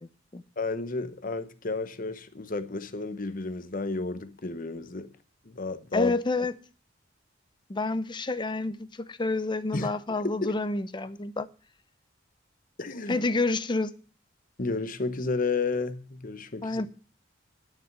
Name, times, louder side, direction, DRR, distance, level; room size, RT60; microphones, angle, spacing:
voice 1, 0.0-0.4 5.9-6.5 7.7-11.5 13.1-13.9 16.6-16.9, left 3 dB, 25° left, 0.6 m, -29 dB
voice 2, 0.6-5.1 5.4-6.1 9.7-9.9 10.2-10.5 12.8-13.2 14.6-16.8, left 3 dB, 45° left, 1.0 m, -32 dB
9.7 x 6.5 x 8.8 m
head